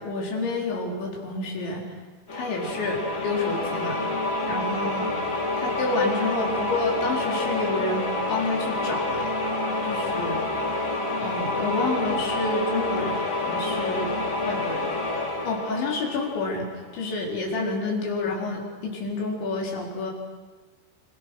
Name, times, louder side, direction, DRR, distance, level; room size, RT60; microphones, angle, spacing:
voice 1, 0.0-1.9 2.3-3.0 3.2-4.0 4.5-5.1 5.6-9.3 9.8-10.4 11.2-14.2 14.5-14.9 15.4-20.1, left 3 dB, 70° left, -1 dB, 6.3 m, -29 dB
sound 1, 2.3-16.9, left 2 dB, 25° left, 2.2 m, -28 dB
26.5 x 26.0 x 6.1 m, 1.3 s
omnidirectional pair, 5.5 m